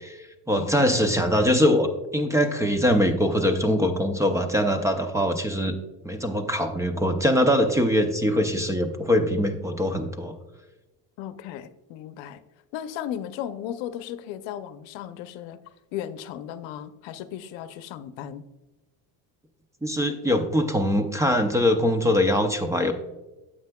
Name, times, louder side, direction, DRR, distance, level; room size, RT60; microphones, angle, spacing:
voice 1, 0.0-5.7 6.0-10.3 19.8-22.9, equal, 10° right, 7 dB, 0.4 m, -23 dB
voice 2, 0.5-1.0 11.2-12.4 12.7-15.6 15.9-18.4, left 10 dB, 90° left, 12 dB, 0.7 m, -36 dB
9.4 x 7.8 x 2.2 m, 1.1 s
cardioid pair, 150°, 43 cm